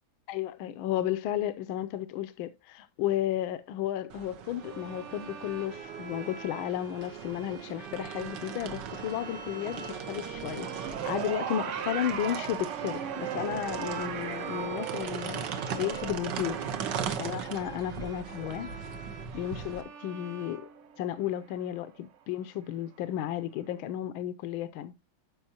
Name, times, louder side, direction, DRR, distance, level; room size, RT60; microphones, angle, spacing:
voice 1, 0.3-10.7 11.0-15.4 15.7-16.6 17.2-18.7 19.3-20.6 21.0-24.9, left 11 dB, 80° left, 1.5 m, -33 dB
sound 1, 4.1-19.8, right 7 dB, 65° right, 1.6 m, -39 dB
sound 2, 4.6-21.4, right 4 dB, 30° right, 1.4 m, -45 dB
sound 3, 10.5-20.9 22.0-22.1, right 9 dB, 90° right, 0.6 m, -39 dB
12.5 x 5.3 x 2.8 m
omnidirectional pair, 2.2 m